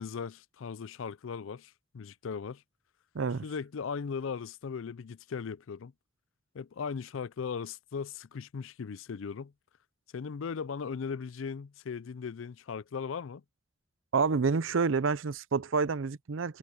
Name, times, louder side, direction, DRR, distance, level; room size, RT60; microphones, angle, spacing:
voice 1, 0.0-2.6 3.4-5.9 6.5-9.5 10.1-13.4, left 6 dB, 75° left, 0.4 m, -38 dB
voice 2, 3.1-3.4 14.1-16.6, right 4 dB, 75° right, 0.6 m, -28 dB
head